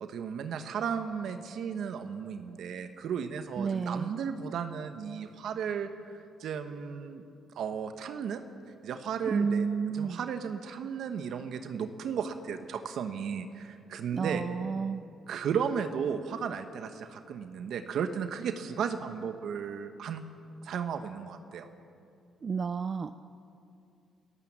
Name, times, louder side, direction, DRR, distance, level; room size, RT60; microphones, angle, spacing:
voice 1, 0.0-7.2 7.5-8.4 8.8-9.7 9.9-14.4 15.3-20.2 20.6-21.7, right 7 dB, 70° right, 8 dB, 1.1 m, -34 dB
voice 2, 3.6-4.1 9.3-10.2 14.1-15.0 22.4-23.1, right 5 dB, 40° right, 11 dB, 0.5 m, -30 dB
27.5 x 13.5 x 7.4 m, 2.6 s
cardioid pair, 90°, 0 cm